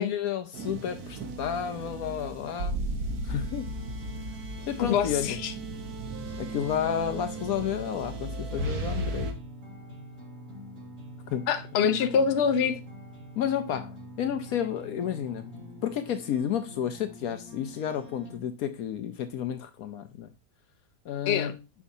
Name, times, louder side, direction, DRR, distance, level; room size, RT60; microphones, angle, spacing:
voice 1, 0.0-2.8 3.2-3.7 4.7-5.4 6.4-9.3 11.3-11.5 13.4-15.5 15.8-20.3 21.0-21.6, left 9 dB, 70° left, 1.1 m, -31 dB
sound 1, 0.5-9.3, right 1 dB, 70° right, 1.5 m, -35 dB
sound 2, 3.6-18.4, equal, 50° right, 4.6 m, -46 dB
voice 2, 4.8-5.5 11.5-12.8 21.3-21.5, left 7 dB, 50° left, 0.9 m, -25 dB
7.1 x 5.6 x 2.7 m
omnidirectional pair, 1.7 m